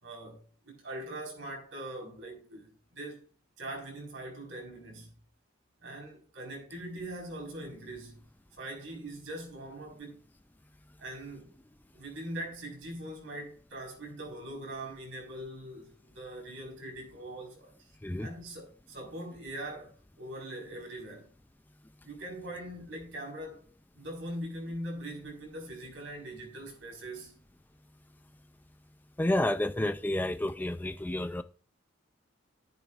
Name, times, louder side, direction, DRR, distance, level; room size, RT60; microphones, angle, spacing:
voice 1, 0.0-3.3 3.6-5.1 5.8-8.2 8.6-10.2 11.0-11.5 11.9-17.7 18.2-21.3 22.0-23.7 23.9-27.4, right 1 dB, 65° right, 4.5 m, -42 dB
voice 2, 29.2-31.4, left 1 dB, 10° left, 0.3 m, -30 dB
12.0 x 10.5 x 2.5 m
head